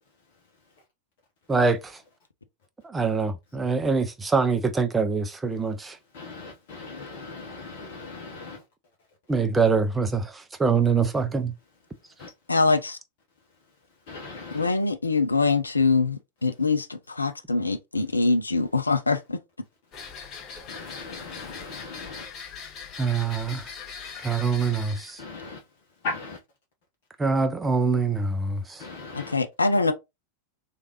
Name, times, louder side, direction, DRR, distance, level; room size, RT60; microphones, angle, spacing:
voice 1, 1.5-2.0 2.8-6.0 9.3-11.5 23.0-23.7 24.2-25.2 27.2-28.8, right 4 dB, 10° right, 0.5 m, -24 dB
voice 2, 6.1-8.6 12.2-12.3 14.1-14.7 20.7-22.3 25.2-25.6 26.0-26.4 28.8-29.4, left 3 dB, 50° left, 0.7 m, -38 dB
voice 3, 12.5-13.0 14.5-19.4 29.1-29.9, left 3 dB, 80° left, 0.4 m, -24 dB
sound 1, 19.9-25.2, left 6 dB, 30° left, 1.2 m, -41 dB
3.2 x 2.4 x 2.8 m
figure-of-eight pair, 90°, 0 cm